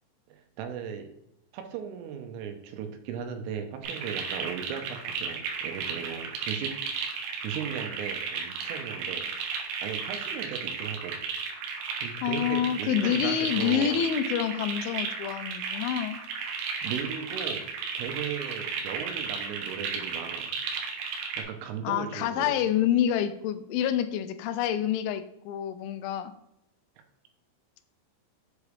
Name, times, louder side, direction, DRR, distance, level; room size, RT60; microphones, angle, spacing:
voice 1, 0.3-1.1 1.5-9.2 9.8-11.2 12.0-14.0 16.8-17.7 17.9-20.5 21.4-22.5, right 8 dB, 90° right, 5 dB, 3.3 m, -37 dB
sound 1, 3.8-21.4, right 6 dB, 75° right, 2.7 m, -34 dB
voice 2, 12.2-16.2 21.8-26.3, left 10 dB, 85° left, 10 dB, 2.9 m, -27 dB
8.0 x 4.9 x 3.4 m, 0.82 s
omnidirectional pair, 5.8 m